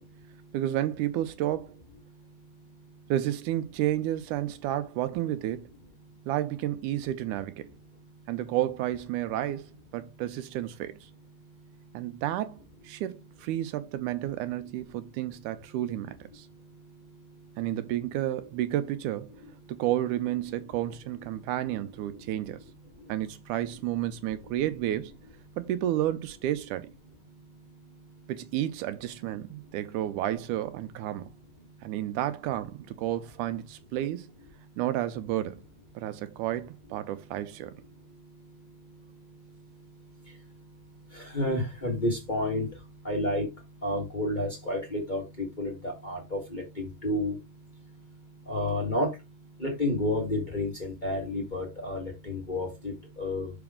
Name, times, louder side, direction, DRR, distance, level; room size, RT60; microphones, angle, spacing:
voice 1, 0.5-1.8 3.1-5.7 6.3-7.7 8.3-11.1 11.9-16.5 17.6-19.4 19.7-22.6 23.1-25.1 25.6-26.9 28.3-31.3 31.8-34.3 34.8-35.6 36.0-37.7, right 13 dB, 80° right, 2.0 m, -31 dB
voice 2, 41.1-42.7 43.0-43.5 43.8-47.3 48.5-49.1 49.6-53.5, left 1 dB, 30° left, 0.8 m, -30 dB
6.0 x 4.8 x 3.6 m
omnidirectional pair, 3.7 m